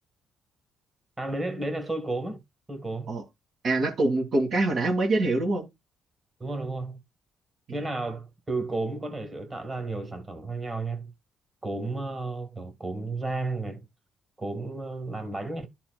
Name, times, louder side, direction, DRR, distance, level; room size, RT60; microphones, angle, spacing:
voice 1, 1.2-2.4 2.7-3.2 6.4-7.0 7.7-11.1 11.6-13.8 14.4-15.7, right 2 dB, 25° right, 1.6 m, -32 dB
voice 2, 3.6-5.7, right 2 dB, 60° right, 1.9 m, -24 dB
12.0 x 4.2 x 2.3 m
cardioid pair, 90°, 0 cm